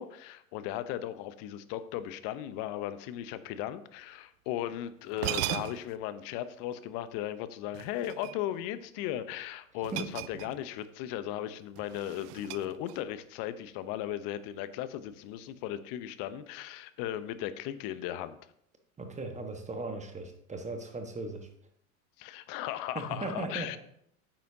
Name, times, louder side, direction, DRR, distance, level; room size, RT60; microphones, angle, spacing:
voice 1, 0.0-18.4 22.2-23.8, left 12 dB, 50° left, 13 dB, 0.9 m, -37 dB
sound 1, 4.7-4.8 5.1-6.0 7.7-8.7 9.8-10.8 11.1-11.3 11.8-13.2, right 16 dB, 45° right, 0.5 m, -38 dB
voice 2, 19.0-21.5 22.9-23.8, right 2 dB, 15° right, 5 dB, 1.3 m, -37 dB
9.4 x 7.4 x 2.8 m, 0.70 s
hypercardioid pair, 85°, 43 cm